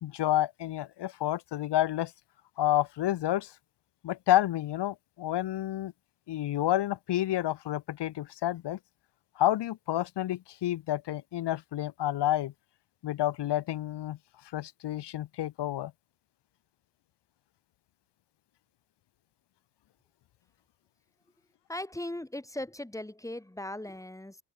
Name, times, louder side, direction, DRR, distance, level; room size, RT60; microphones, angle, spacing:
voice 1, 0.0-2.1 2.6-3.5 4.0-5.9 6.3-8.8 9.4-12.5 13.0-14.2 14.5-15.9, left 13 dB, 55° left, 4.1 m, -29 dB
voice 2, 21.7-24.4, left 1 dB, 5° left, 3.8 m, -38 dB
open air
hypercardioid pair, 55°, 50 cm